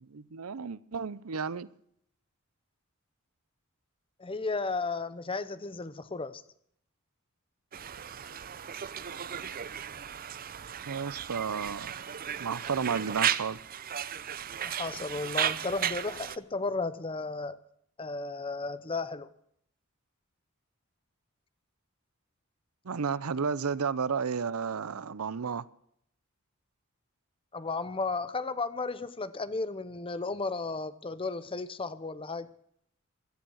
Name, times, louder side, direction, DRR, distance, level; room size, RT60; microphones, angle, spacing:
voice 1, 0.0-1.7 10.9-11.9 12.4-13.6 22.8-25.6, right 6 dB, 90° right, 0.6 m, -32 dB
voice 2, 4.2-6.4 14.6-17.6 18.0-19.3 27.5-32.5, left 3 dB, 25° left, 0.8 m, -34 dB
Conversation, 7.7-16.4, right 9 dB, 45° right, 0.6 m, -35 dB
16.5 x 11.5 x 6.4 m
head